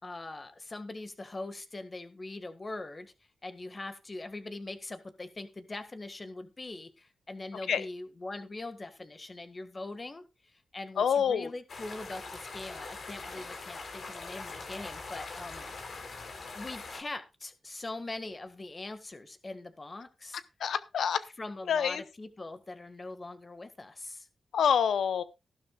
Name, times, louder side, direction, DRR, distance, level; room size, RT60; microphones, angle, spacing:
voice 1, 0.0-3.1 3.4-15.7 16.5-20.4 21.4-24.3, left 2 dB, 35° left, 9 dB, 1.8 m, -42 dB
voice 2, 11.0-11.5 20.6-21.2 21.7-22.0 24.5-25.2, left 7 dB, 85° left, 14 dB, 0.8 m, -26 dB
sound 1, 11.7-17.0, left 3 dB, 70° left, 3.6 m, -42 dB
15.0 x 12.0 x 2.4 m, 0.26 s
cardioid pair, 65°, 0 cm